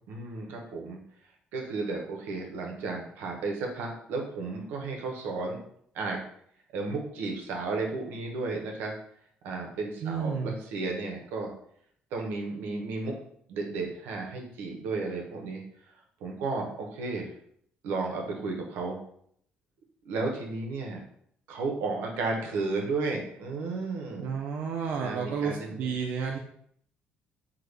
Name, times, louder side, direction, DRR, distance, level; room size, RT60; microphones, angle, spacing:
voice 1, 0.1-1.0 1.5-5.6 5.9-6.2 6.7-8.9 9.4-11.5 12.1-13.1 13.5-15.6 16.2-17.3 17.8-19.0 20.0-21.0 21.5-24.3 25.0-25.9, right 3 dB, 90° right, 1 dB, 0.7 m, -33 dB
voice 2, 10.0-10.5 24.2-26.4, right 6 dB, 65° right, 1 dB, 0.4 m, -31 dB
3.6 x 2.2 x 3.2 m, 0.66 s
cardioid pair, 135°, 3 cm